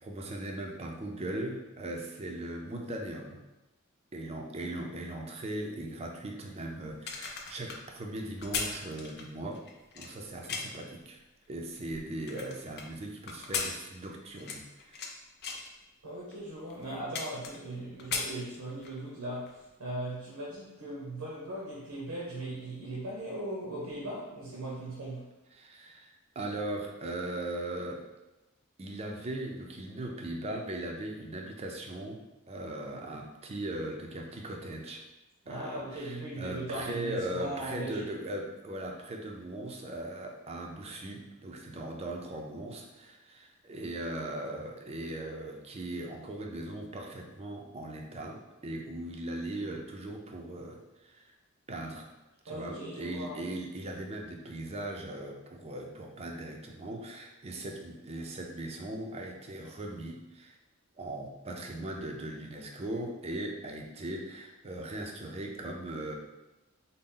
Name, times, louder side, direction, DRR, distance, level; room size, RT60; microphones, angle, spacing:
voice 1, 0.0-3.4 4.1-9.6 9.9-11.2 11.5-15.1 25.5-28.0 28.8-35.0 35.5-51.3 51.7-52.1 52.4-60.6 61.0-66.1, right 1 dB, 30° right, 1 dB, 0.5 m, -39 dB
sound 1, 6.9-10.9 11.4-12.9 13.3-15.1 15.4-15.7 16.3-16.4 16.7-17.7 18.0-19.0 19.4-19.5, left 5 dB, 50° left, 0.5 m, -37 dB
voice 2, 16.0-25.3 35.5-38.0 52.5-53.4, right 1 dB, 90° right, -5 dB, 0.8 m, -39 dB
4.0 x 2.1 x 3.7 m, 1.0 s
head